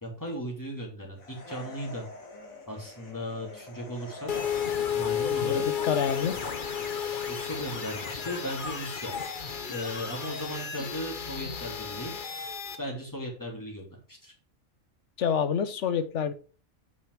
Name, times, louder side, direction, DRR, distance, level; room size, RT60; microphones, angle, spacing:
voice 1, 0.0-2.1 2.7-4.3 4.9-5.7 7.2-9.1 9.7-12.1 12.8-14.3, equal, 15° left, 2.9 m, -37 dB
sound 1, 1.2-5.0, left 2 dB, 80° left, 2.3 m, -46 dB
sound 2, 4.3-12.8, left 7 dB, 40° left, 1.1 m, -32 dB
voice 2, 5.4-6.4 15.2-16.3, left 7 dB, 65° left, 1.1 m, -27 dB
7.8 x 5.5 x 4.7 m
omnidirectional pair, 1.4 m